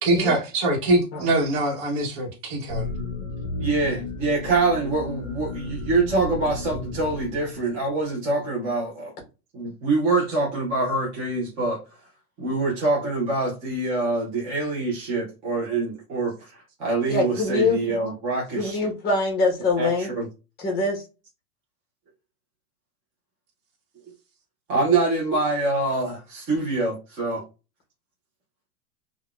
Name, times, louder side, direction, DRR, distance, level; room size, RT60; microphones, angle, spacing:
voice 1, 0.0-2.9, right 2 dB, 40° right, 1.0 m, -23 dB
sound 1, 2.7-8.0, left 3 dB, 60° left, 0.9 m, -34 dB
voice 2, 3.6-9.1 9.5-11.8 12.4-18.8 19.8-20.3 24.7-27.4, right 3 dB, 15° right, 0.4 m, -25 dB
voice 3, 17.1-17.8 18.6-20.1 20.6-21.0, left 3 dB, 20° left, 1.0 m, -23 dB
3.6 x 2.2 x 2.3 m
supercardioid pair, 155°, 45 cm